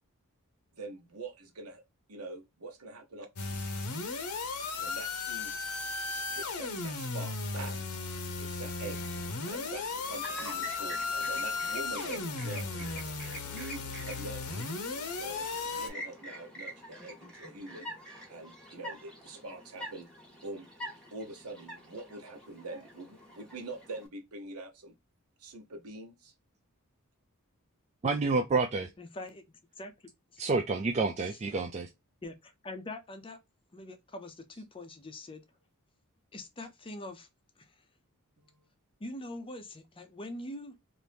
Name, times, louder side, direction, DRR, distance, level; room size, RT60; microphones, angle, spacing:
voice 1, 0.7-1.8 2.1-3.3 4.8-5.5 6.1-7.8 8.4-9.0 9.5-13.1 13.5-14.6 14.9-17.9 18.3-20.1 20.4-20.7 21.1-24.9 25.4-26.3 38.4-38.7, right 2 dB, 75° right, 0.9 m, -44 dB
sound 1, 3.4-15.9, left 4 dB, 85° left, 0.8 m, -36 dB
Chirp tweet, 8.9-24.1, equal, 5° left, 1.0 m, -47 dB
voice 2, 28.0-28.9 30.4-31.9, right 3 dB, 30° right, 0.3 m, -29 dB
voice 3, 29.0-29.4 29.8-29.9 30.3-30.4 31.5-31.7 32.2-33.4 33.7-35.4 36.3-37.3 37.6-37.7 39.0-40.8, left 1 dB, 25° left, 0.5 m, -43 dB
2.9 x 2.6 x 3.3 m
head